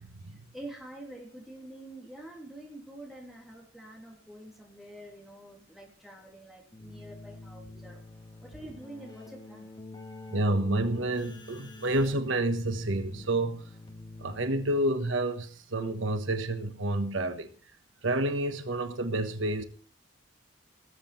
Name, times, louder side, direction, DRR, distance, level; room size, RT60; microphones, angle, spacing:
voice 1, 0.5-8.0 8.4-9.7, right 1 dB, ahead, 3.2 m, -46 dB
Keyboard (musical), 6.7-15.1, left 2 dB, 20° left, 2.1 m, -47 dB
voice 2, 10.3-13.6 14.2-17.5 18.0-19.6, right 1 dB, 85° right, 1.3 m, -29 dB
19.0 x 7.8 x 4.4 m
head